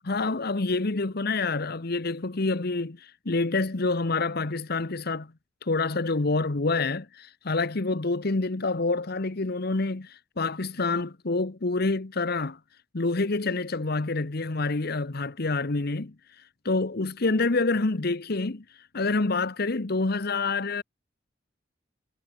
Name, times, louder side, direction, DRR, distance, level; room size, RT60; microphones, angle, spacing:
voice 1, 0.0-5.3 5.6-12.6 12.9-16.1 16.6-18.6 18.9-20.8, left 3 dB, 55° left, 1.1 m, -27 dB
head